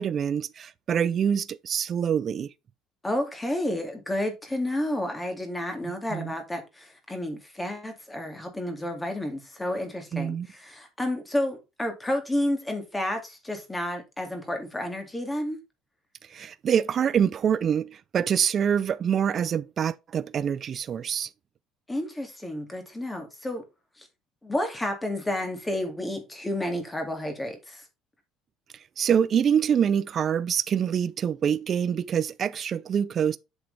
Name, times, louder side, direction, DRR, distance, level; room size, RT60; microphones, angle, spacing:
voice 1, 0.0-2.5 5.8-6.3 10.1-10.5 16.3-21.3 29.0-33.4, right 8 dB, 35° right, 0.5 m, -25 dB
voice 2, 3.0-15.6 21.9-23.6 24.0-24.1 24.4-27.8, left 1 dB, 10° left, 2.3 m, -31 dB
7.7 x 6.4 x 3.3 m
cardioid pair, 155°, 0 cm